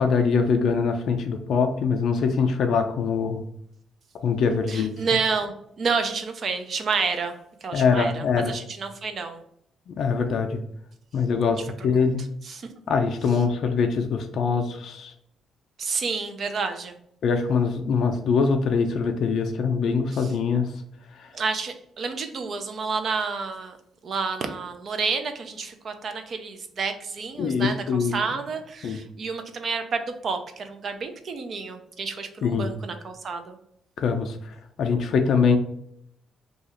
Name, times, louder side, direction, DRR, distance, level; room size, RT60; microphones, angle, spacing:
voice 1, 0.0-3.4 4.2-4.9 7.7-8.6 9.9-10.6 11.1-11.6 11.8-12.2 12.9-15.1 17.2-20.7 27.4-28.1 28.8-29.0 32.4-32.7 34.0-34.3 34.8-35.6, left 5 dB, 70° left, 5 dB, 0.4 m, -23 dB
voice 2, 4.7-7.4 7.6-9.4 12.0-12.7 13.3-13.4 15.8-17.0 20.1-20.4 21.3-23.8 24.0-33.6, right 5 dB, 50° right, 7 dB, 0.5 m, -30 dB
2.8 x 2.4 x 4.2 m, 0.71 s
cardioid pair, 90°, 0 cm